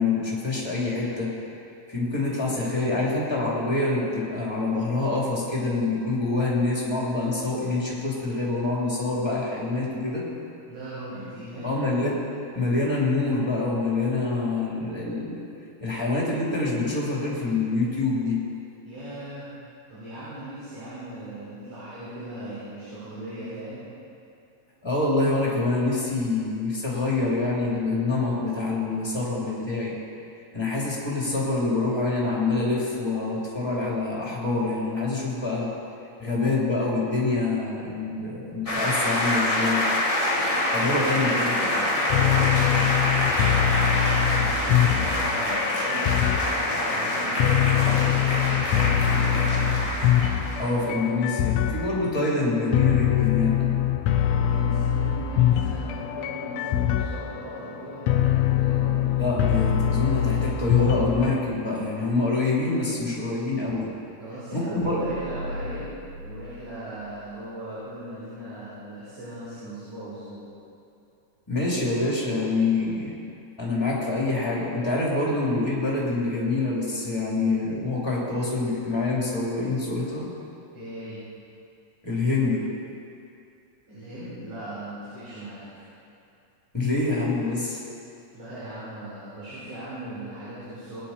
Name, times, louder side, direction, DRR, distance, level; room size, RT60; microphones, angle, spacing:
voice 1, 0.0-1.3 1.9-10.2 11.6-12.2 12.5-15.4 15.8-18.4 24.8-29.9 30.5-35.7 36.2-39.8 40.7-41.7 50.6-53.7 59.2-63.9 64.5-65.0 71.5-73.1 73.6-80.3 82.0-82.7 86.7-87.8, left 3 dB, 10° left, -5 dB, 2.5 m, -26 dB
voice 2, 10.7-11.7 18.8-19.5 19.9-23.8 40.8-43.0 43.8-49.7 54.3-59.1 64.2-65.9 66.2-70.5 80.7-81.2 83.9-85.7 88.3-91.0, right 1 dB, 65° right, -12 dB, 5.3 m, -38 dB
sound 1, 38.7-50.8, left 1 dB, 45° left, 0.4 m, -26 dB
sound 2, 42.1-61.4, left 11 dB, 80° left, 1.5 m, -24 dB
sound 3, 64.8-67.3 67.7-67.8, equal, 90° right, 2.8 m, -39 dB
20.5 x 9.8 x 4.3 m, 2.6 s
omnidirectional pair, 3.7 m